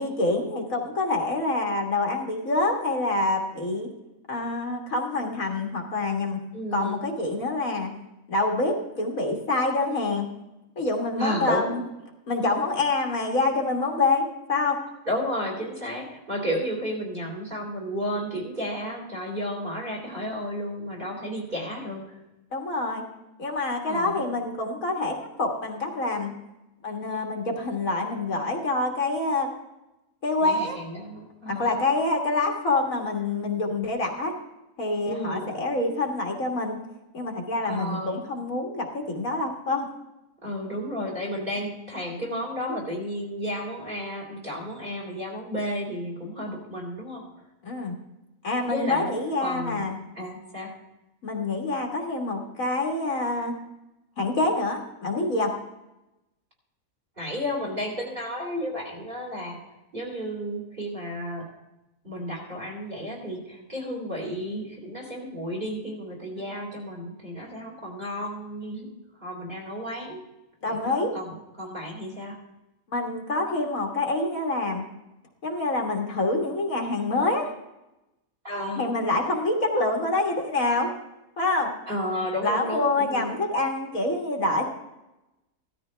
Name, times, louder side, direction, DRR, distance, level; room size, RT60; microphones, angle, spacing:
voice 1, 0.0-3.9 4.3-6.4 6.7-7.9 8.3-10.3 10.8-11.8 12.3-14.8 22.5-23.1 23.4-26.3 26.8-29.5 30.2-30.8 31.5-34.3 34.8-36.8 37.1-39.9 41.6-41.7 47.6-47.9 48.4-50.0 51.2-53.6 54.2-55.5 66.4-66.5 70.6-71.1 72.9-74.9 75.4-77.5 78.8-80.9 81.4-81.7 82.4-84.7, left 2 dB, 60° left, 1 dB, 2.1 m, -26 dB
voice 2, 6.5-7.0 11.2-11.7 15.1-22.2 23.9-24.2 30.4-31.8 35.1-35.5 37.6-38.2 40.4-47.2 48.7-49.1 49.4-49.8 50.2-50.7 57.2-61.5 62.0-68.9 69.2-70.2 70.6-72.4 78.4-78.9 81.9-83.3, equal, 35° right, -1 dB, 3.9 m, -32 dB
16.5 x 13.0 x 3.4 m, 0.96 s
omnidirectional pair, 1.6 m